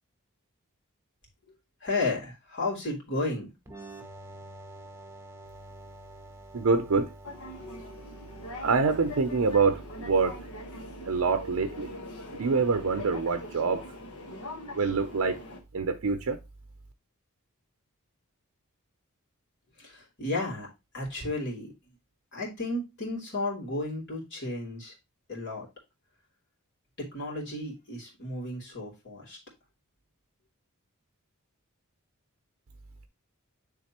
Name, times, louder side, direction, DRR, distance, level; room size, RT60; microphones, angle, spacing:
voice 1, 1.8-3.5 19.8-20.7 20.9-21.7 22.3-24.9 25.3-25.7 27.0-29.4, left 2 dB, 55° left, 3.1 m, -33 dB
sound 1, 3.7-11.1, right 1 dB, 10° right, 0.8 m, -49 dB
voice 2, 6.5-7.1 8.6-10.4 11.1-11.9 12.3-13.8 14.8-15.4 15.7-16.4, right 4 dB, 65° right, 0.5 m, -25 dB
sound 2, 7.2-15.6, left 1 dB, 85° left, 1.3 m, -42 dB
9.7 x 3.6 x 2.9 m
head